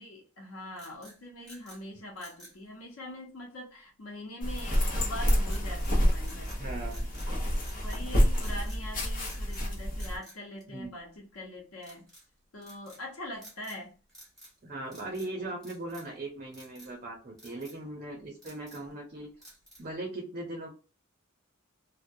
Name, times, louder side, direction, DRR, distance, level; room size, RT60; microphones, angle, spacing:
voice 1, 0.0-6.8 7.3-12.1 12.5-14.0, left 1 dB, 85° left, -1 dB, 0.7 m, -43 dB
sound 1, 0.7-1.8 2.2-2.6 5.5-6.0 6.2-7.3 7.6-8.0 8.4-8.8 9.2-9.7 10.0-11.2 11.8-12.3 12.6-13.0 13.4-13.8 14.1-14.6 14.8-15.3 15.6-16.2 16.5-16.9 17.4-17.8 18.2-18.9 19.4-19.9, right 1 dB, 5° left, 1.2 m, -53 dB
sound 2, 4.4-10.2, equal, 45° left, 0.7 m, -28 dB
voice 2, 6.6-7.1 10.7-10.9 14.6-19.3 19.8-20.7, right 2 dB, 40° right, 0 dB, 0.6 m, -39 dB
2.3 x 2.1 x 2.6 m, 0.34 s
head